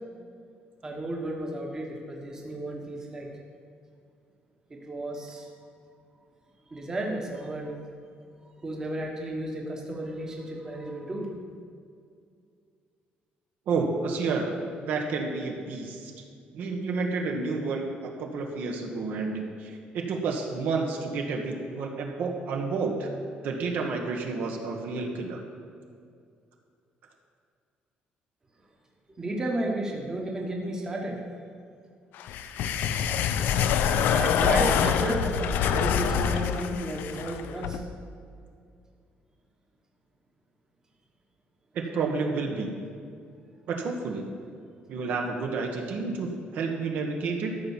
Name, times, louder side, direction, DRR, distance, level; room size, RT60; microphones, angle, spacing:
voice 1, 0.8-3.3 4.9-5.5 6.7-7.8 8.6-11.3 29.2-31.2 34.1-37.8, right 1 dB, 20° right, 0 dB, 1.3 m, -33 dB
voice 2, 13.7-14.6 14.9-16.2 16.5-23.1 23.4-25.4 41.7-42.7 43.7-44.3 44.9-47.5, right 4 dB, 60° right, 2 dB, 1.4 m, -30 dB
sound 1, 32.2-37.8, left 8 dB, 75° left, 0.6 m, -25 dB
14.0 x 5.9 x 7.2 m, 2.3 s
cardioid pair, 175°, 3 cm